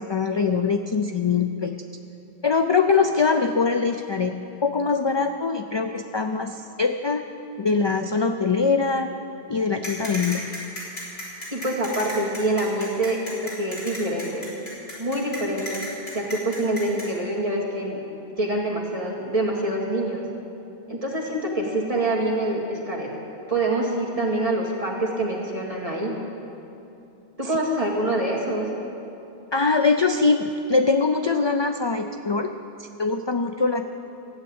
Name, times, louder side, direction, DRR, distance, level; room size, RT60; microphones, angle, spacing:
voice 1, 0.0-1.8 2.4-7.2 7.6-9.1 9.5-10.5 27.4-27.6 29.5-32.5 32.8-33.9, left 4 dB, 45° left, 7 dB, 0.3 m, -23 dB
sound 1, 9.8-17.1, left 1 dB, 80° left, 3.7 m, -34 dB
voice 2, 11.5-14.5 15.0-15.8 16.1-18.0 18.4-20.2 20.9-23.1 23.5-26.1 27.4-28.7, right 1 dB, 35° right, -3 dB, 2.3 m, -25 dB
14.0 x 8.1 x 8.8 m, 2.9 s
omnidirectional pair, 1.1 m